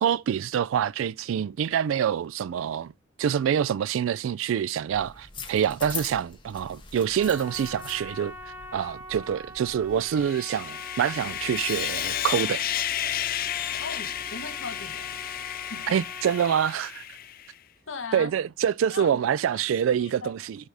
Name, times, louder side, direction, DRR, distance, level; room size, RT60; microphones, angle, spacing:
voice 1, 0.0-2.9 3.2-8.3 8.7-12.6 15.9-17.0 18.1-20.6, right 8 dB, 75° right, 0.3 m, -26 dB
sound 1, 4.9-10.3, left 5 dB, 25° left, 1.4 m, -43 dB
Trumpet, 7.2-16.6, equal, 15° right, 1.2 m, -44 dB
Sawing, 10.0-17.5, left 11 dB, 45° left, 0.4 m, -32 dB
voice 2, 13.8-15.2 15.5-16.0 17.9-18.3 18.9-19.2 19.5-20.3, left 5 dB, 75° left, 1.2 m, -39 dB
9.6 x 3.4 x 4.8 m
head